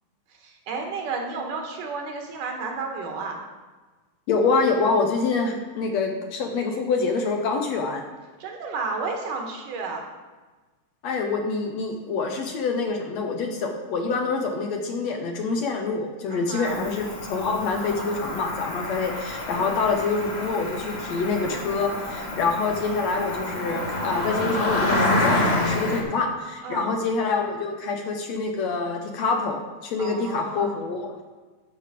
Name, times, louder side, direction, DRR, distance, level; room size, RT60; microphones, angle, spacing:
voice 1, 0.3-3.4 8.4-10.1 16.3-16.8 19.5-19.8 26.6-26.9 30.0-30.8, right 4 dB, 80° right, 2 dB, 3.0 m, -32 dB
voice 2, 4.3-8.0 11.0-31.2, left 4 dB, 65° left, 2 dB, 2.0 m, -26 dB
Cricket, 16.7-26.0, left 1 dB, 25° left, 0.8 m, -28 dB
12.5 x 6.4 x 5.1 m, 1.3 s
omnidirectional pair, 3.7 m